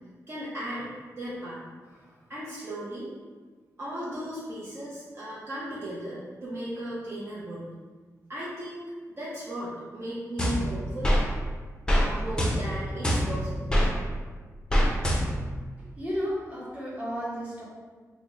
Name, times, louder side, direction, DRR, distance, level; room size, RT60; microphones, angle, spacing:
voice 1, 0.3-3.1 3.8-7.7 8.3-11.2 11.9-13.7, right 1 dB, 40° right, -8 dB, 0.7 m, -36 dB
sound 1, 10.4-11.2 11.9-12.1 12.4-13.9 14.7-15.5, equal, 15° left, 0.5 m, -24 dB
voice 2, 15.8-17.6, equal, 25° right, -7 dB, 1.0 m, -33 dB
3.4 x 2.1 x 3.6 m, 1.4 s
wide cardioid pair, 105°, 6 cm